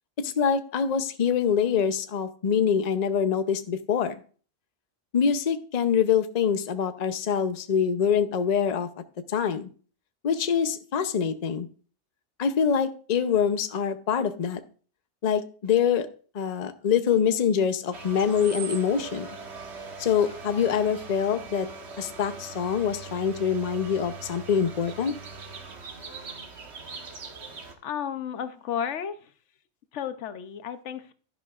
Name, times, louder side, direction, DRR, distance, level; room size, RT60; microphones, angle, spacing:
voice 1, 0.2-4.1 5.1-8.9 9.3-9.7 10.2-11.7 12.4-14.6 15.2-16.1 16.3-19.3 20.0-21.7 22.0-25.1, left 7 dB, 40° left, 10 dB, 0.7 m, -25 dB
sound 1, 17.9-27.7, right 4 dB, 70° right, 1.5 m, -41 dB
voice 2, 27.8-29.1 29.9-31.1, left 8 dB, 80° left, 11 dB, 1.0 m, -32 dB
11.5 x 10.5 x 2.4 m, 0.40 s
omnidirectional pair, 1.2 m